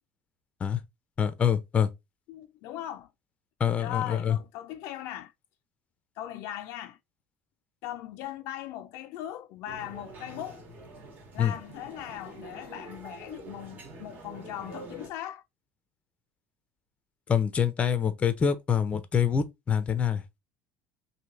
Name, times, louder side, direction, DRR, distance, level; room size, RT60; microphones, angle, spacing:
voice 1, 1.2-1.9 3.6-4.4 11.4-11.5 17.3-20.2, left 8 dB, 25° left, 0.6 m, -25 dB
voice 2, 2.3-3.1 3.8-5.3 6.2-7.0 7.8-10.6 11.3-15.4, left 12 dB, 70° left, 0.5 m, -39 dB
sound 1, 9.6-15.1, right 3 dB, 40° right, 1.2 m, -46 dB
3.1 x 2.7 x 3.8 m
cardioid pair, 130°, 5 cm